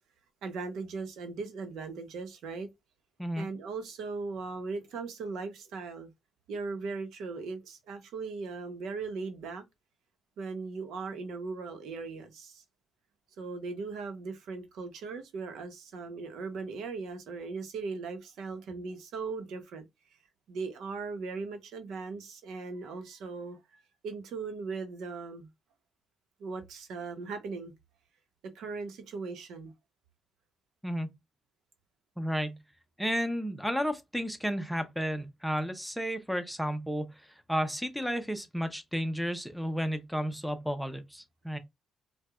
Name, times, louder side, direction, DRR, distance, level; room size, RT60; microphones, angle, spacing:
voice 1, 0.4-2.7 3.4-6.1 6.5-9.6 10.4-12.6 13.4-19.9 20.5-25.5 26.4-27.7 28.5-29.7, right 4 dB, 80° right, 0.9 m, -38 dB
voice 2, 32.2-32.6 33.0-41.6, equal, ahead, 0.7 m, -32 dB
4.6 x 2.3 x 2.4 m
cardioid pair, 90°, 0 cm